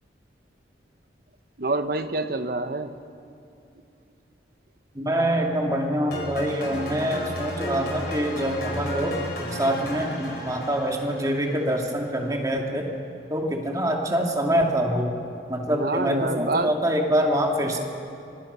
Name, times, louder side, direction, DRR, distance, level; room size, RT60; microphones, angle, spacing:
voice 1, 1.6-3.0 15.7-16.7, right 2 dB, 55° right, 9 dB, 1.0 m, -27 dB
voice 2, 4.9-9.1 9.5-12.8 13.3-15.1 15.5-17.8, equal, 20° right, 1 dB, 2.3 m, -25 dB
sound 1, 6.1-12.2, left 1 dB, 60° left, 4.6 m, -34 dB
25.5 x 23.0 x 5.6 m, 2.6 s
head